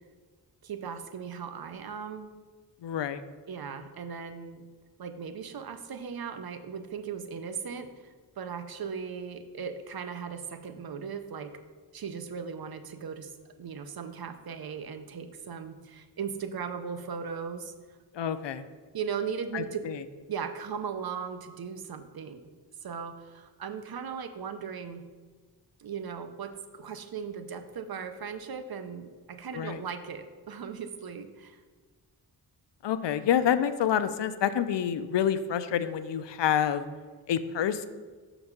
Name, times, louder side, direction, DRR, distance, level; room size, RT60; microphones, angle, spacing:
voice 1, 0.6-2.3 3.5-4.6 5.0-7.9 8.4-11.6 11.9-13.3 13.6-17.7 18.9-19.8 20.3-22.4 22.8-25.0 25.8-31.6, right 6 dB, 55° right, 9 dB, 0.6 m, -38 dB
voice 2, 2.8-3.2 18.1-18.6 19.5-20.0 29.5-29.8 32.8-36.8 37.3-37.9, left 9 dB, 70° left, 12 dB, 0.5 m, -28 dB
6.3 x 4.0 x 5.8 m, 1.4 s
wide cardioid pair, 75°, 44 cm